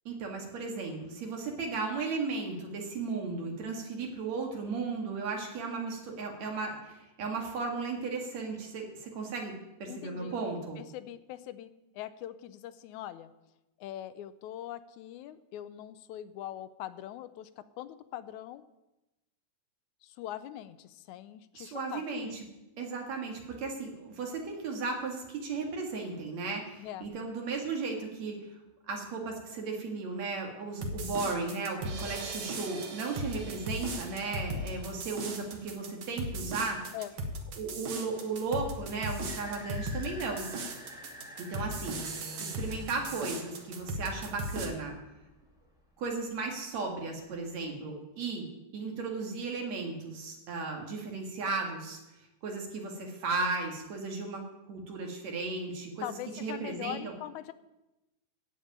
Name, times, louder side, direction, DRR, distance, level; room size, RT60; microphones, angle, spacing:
voice 1, 0.0-9.5 9.8-10.8 21.6-22.3 22.8-28.4 28.9-36.8 37.6-40.5 41.4-45.0 46.0-48.5 48.7-52.0 52.4-56.1 56.4-57.1, right 4 dB, 65° right, 1 dB, 3.2 m, -35 dB
voice 2, 9.9-10.4 10.8-13.3 13.8-18.6 20.0-22.0 26.8-27.1 36.9-37.1 56.0-57.5, left 12 dB, 85° left, 14 dB, 2.0 m, -42 dB
sound 1, 30.8-44.7, right 1 dB, 50° right, 1.8 m, -37 dB
sound 2, 38.4-45.8, equal, ahead, 2.1 m, -50 dB
15.0 x 5.2 x 8.9 m, 0.98 s
omnidirectional pair, 3.3 m